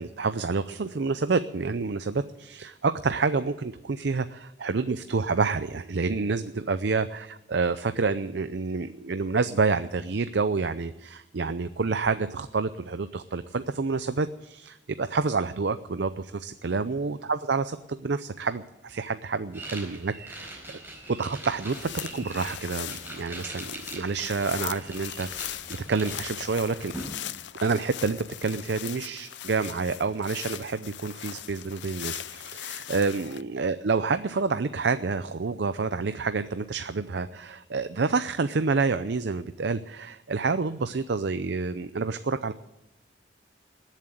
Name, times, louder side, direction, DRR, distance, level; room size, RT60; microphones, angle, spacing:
voice 1, 0.0-20.5 21.1-25.6 25.9-26.9 27.6-42.5, right 4 dB, 65° right, 11 dB, 0.5 m, -28 dB
sound 1, 19.5-27.1, right 2 dB, 10° right, 4.5 m, -42 dB
sound 2, 21.5-33.4, left 12 dB, 70° left, 0.5 m, -39 dB
20.0 x 7.4 x 9.0 m, 0.92 s
head